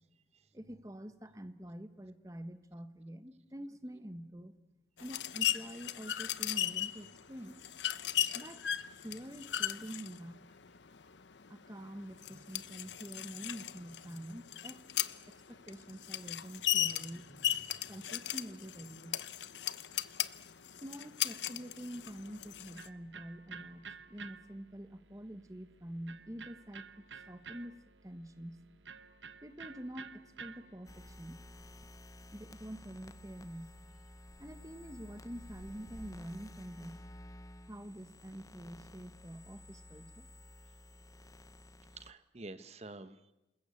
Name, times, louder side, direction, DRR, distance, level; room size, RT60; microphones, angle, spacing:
voice 1, 0.5-4.5 5.0-7.6 8.3-8.6 9.0-10.4 11.5-14.9 15.5-19.2 20.8-27.7 28.0-28.6 29.4-31.4 32.3-33.7 34.4-37.0 37.7-40.3, equal, 20° right, 10 dB, 1.3 m, -47 dB
sound 1, 5.0-22.9, left 11 dB, 80° left, 0.9 m, -37 dB
voice 2, 8.0-8.4 19.9-20.1 41.9-43.3, right 2 dB, 35° right, 12 dB, 1.1 m, -50 dB
Electric guitar, 22.0-31.1, right 5 dB, 85° right, 1.1 m, -52 dB
sound 2, 30.8-42.1, left 1 dB, 20° left, 1.0 m, -53 dB
28.0 x 20.5 x 8.6 m, 0.98 s
head